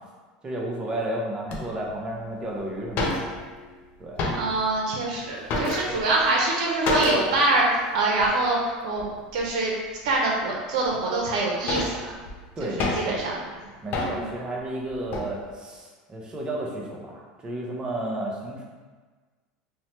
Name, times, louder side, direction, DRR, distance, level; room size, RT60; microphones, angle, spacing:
voice 1, 0.4-3.3 4.0-4.2 12.6-13.2 13.8-18.6, right 1 dB, 25° right, -2 dB, 0.6 m, -32 dB
sound 1, 1.5-1.6 2.3-2.4 2.6-2.7 2.9-3.7 4.0-4.7 5.1-6.2 6.9-7.4 7.7-7.8 8.2-8.4 9.0-9.5 10.0-10.1 10.8-10.9 11.3-13.3 13.9-14.4 14.9-15.3, left 2 dB, 55° left, 0.5 m, -29 dB
voice 2, 4.3-9.1 9.3-9.7 10.0-11.9 12.6-12.7 13.1-13.4 14.0-14.3, right 2 dB, 75° right, -2 dB, 0.5 m, -24 dB
3.0 x 2.1 x 2.9 m, 1.4 s
supercardioid pair, 110°, 4 cm